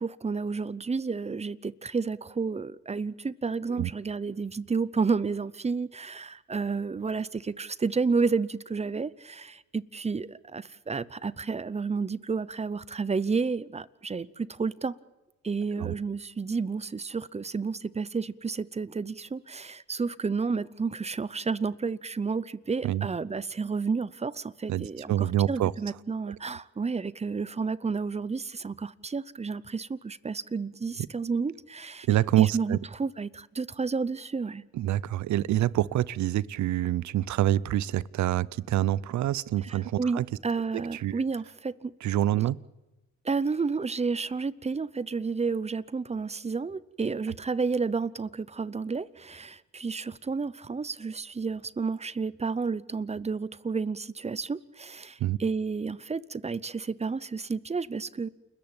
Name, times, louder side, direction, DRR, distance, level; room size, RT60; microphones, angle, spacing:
voice 1, 0.0-15.0 15.4-32.1 32.4-34.6 39.6-41.9 43.2-58.3, right 4 dB, 20° right, 0.7 m, -31 dB
voice 2, 24.7-25.7 32.1-32.8 34.7-40.3 41.0-41.2 42.0-42.6 55.2-55.4, right 13 dB, 70° right, 0.7 m, -26 dB
29.0 x 14.0 x 8.9 m
cardioid pair, 90°, 30 cm